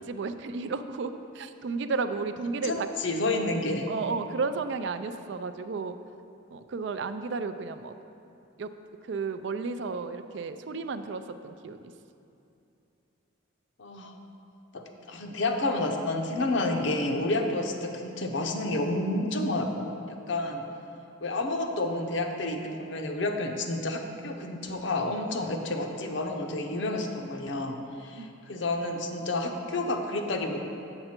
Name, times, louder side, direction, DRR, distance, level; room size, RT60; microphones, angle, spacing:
voice 1, 0.0-2.9 3.9-6.0 6.5-7.9 8.6-8.7 9.0-11.9 28.2-28.3, right 4 dB, 60° right, 10 dB, 0.3 m, -33 dB
voice 2, 2.7-3.9 13.8-14.1 14.7-20.6 21.2-30.6, left 2 dB, 65° left, 4 dB, 0.7 m, -30 dB
7.9 x 6.6 x 4.4 m, 2.7 s
head